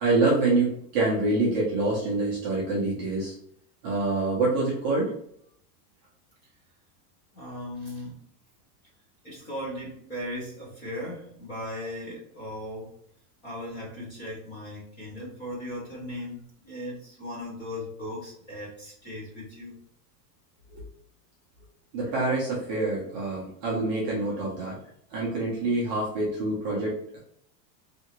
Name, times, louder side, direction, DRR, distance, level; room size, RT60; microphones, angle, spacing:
voice 1, 0.0-3.3 3.8-5.1 21.9-24.8 25.1-27.2, right 2 dB, 30° right, -5 dB, 0.5 m, -26 dB
voice 2, 7.3-8.2 9.2-13.0 13.4-19.8, left 1 dB, 20° left, -4 dB, 0.7 m, -37 dB
2.7 x 2.5 x 2.8 m, 0.69 s
supercardioid pair, 175°, 48 cm